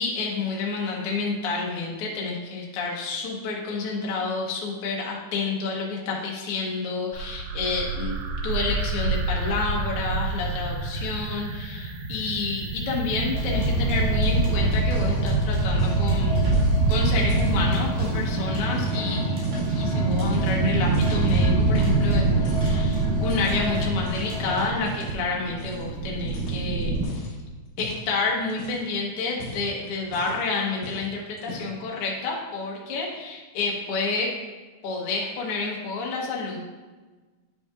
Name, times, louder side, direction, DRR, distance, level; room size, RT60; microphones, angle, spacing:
voice 1, 0.0-8.2 8.4-16.5 16.9-19.4 19.7-27.4 27.8-34.4 34.8-36.6, left 4 dB, 75° left, -2 dB, 1.3 m, -29 dB
sound 1, 7.1-27.1, right 3 dB, 80° right, 2.5 m, -25 dB
sound 2, 13.3-24.7, left 2 dB, 65° right, 3.3 m, -31 dB
sound 3, 14.2-14.6 14.9-15.3 15.8-18.3 18.7-19.8 20.1-21.3 21.7-22.2 22.4-24.3 24.8-25.2 25.6-25.9 26.2-27.3 27.8-28.1 28.5-28.9 29.3-30.5 30.8-31.1 31.4-31.9, equal, 55° left, 2.3 m, -40 dB
9.6 x 5.4 x 2.5 m, 1.3 s
omnidirectional pair, 4.3 m